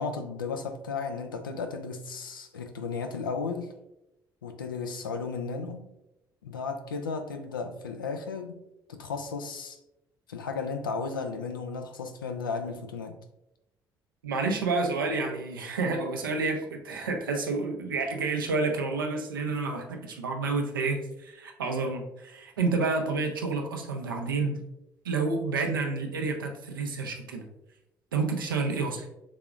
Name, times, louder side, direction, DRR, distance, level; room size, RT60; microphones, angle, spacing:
voice 1, 0.0-3.7 4.4-5.9 6.4-8.6 8.9-9.8 10.3-13.2, left 4 dB, 85° left, 0.4 m, -34 dB
voice 2, 14.2-24.6 25.0-27.5 28.1-29.1, right 3 dB, 85° right, 0.6 m, -29 dB
5.8 x 3.7 x 2.4 m
figure-of-eight pair, 50°, 11 cm